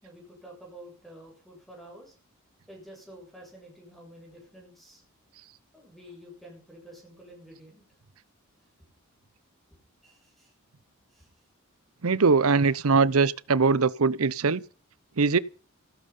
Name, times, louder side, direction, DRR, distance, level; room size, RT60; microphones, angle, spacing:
voice 1, 0.0-2.1 2.7-5.0 5.7-7.8 10.0-10.5 11.1-11.3, equal, ahead, 7.5 m, -49 dB
voice 2, 12.0-14.6 15.2-15.4, right 4 dB, 80° right, 0.8 m, -22 dB
16.0 x 13.5 x 5.5 m
head